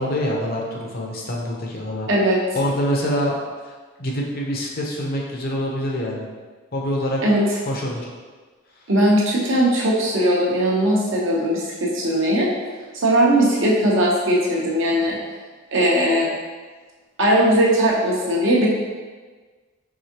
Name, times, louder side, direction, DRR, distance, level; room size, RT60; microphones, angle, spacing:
voice 1, 0.0-2.1 2.5-3.4 4.0-6.3 6.7-7.2 7.6-8.1, equal, 45° left, -1 dB, 0.7 m, -25 dB
voice 2, 8.9-12.5 12.9-15.1 15.7-16.3 17.2-18.7, right 1 dB, 60° right, -4 dB, 0.9 m, -19 dB
4.8 x 3.6 x 2.8 m, 1.4 s
head